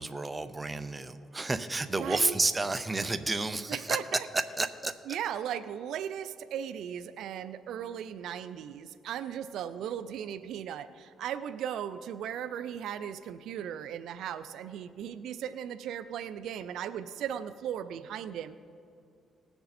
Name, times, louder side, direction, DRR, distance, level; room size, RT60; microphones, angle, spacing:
voice 1, 0.0-4.9, right 2 dB, 20° right, 10 dB, 0.6 m, -31 dB
voice 2, 2.0-2.4 3.7-4.3 5.1-18.6, right 9 dB, 80° right, 12 dB, 0.4 m, -37 dB
19.0 x 6.8 x 4.2 m, 2.5 s
cardioid pair, 90°, 0 cm